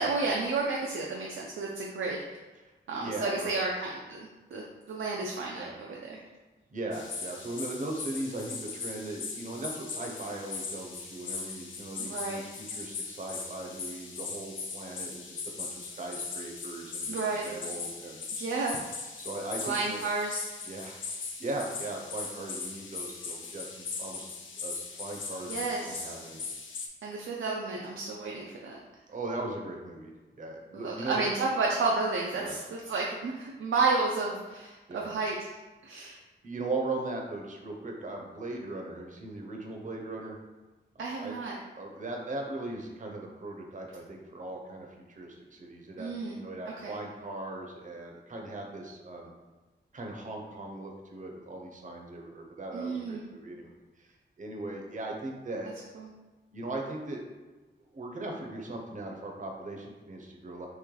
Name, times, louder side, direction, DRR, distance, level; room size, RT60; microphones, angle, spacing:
voice 1, 0.0-2.2 2.9-6.2 12.0-12.4 17.1-17.5 18.3-18.8 19.6-20.4 25.5-26.1 27.0-28.7 30.7-35.3 35.8-36.2 41.0-41.6 46.0-46.4 46.8-47.0 52.7-53.2 55.9-56.1, right 3 dB, 85° right, -2 dB, 0.5 m, -31 dB
voice 2, 3.0-3.7 5.5-5.7 6.7-18.2 19.2-20.0 20.6-21.0 21.4-24.3 24.6-26.5 29.1-31.2 32.4-32.5 34.9-35.1 36.4-40.4 40.9-41.3 41.8-49.3 49.9-53.7 54.0-55.7 56.5-57.2 57.8-60.7, right 2 dB, 40° right, 1 dB, 0.6 m, -39 dB
sound 1, 6.9-26.9, left 4 dB, 75° left, 0.5 m, -39 dB
3.1 x 3.0 x 3.7 m, 1.2 s
wide cardioid pair, 160°, 20 cm